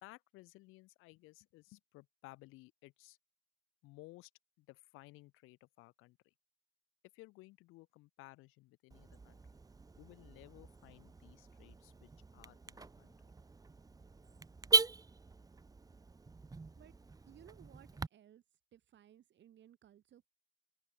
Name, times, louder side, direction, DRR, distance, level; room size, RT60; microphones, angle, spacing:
voice 1, 0.0-3.2 3.8-4.3 4.6-6.2 7.1-9.4 10.0-13.1, left 21 dB, 90° left, 3.0 m, -58 dB
Car / Alarm, 8.9-18.1, right 4 dB, 20° right, 0.6 m, -39 dB
voice 2, 17.2-18.4 18.7-20.3, right 11 dB, 65° right, 1.6 m, -61 dB
open air
supercardioid pair, 70°, 20 cm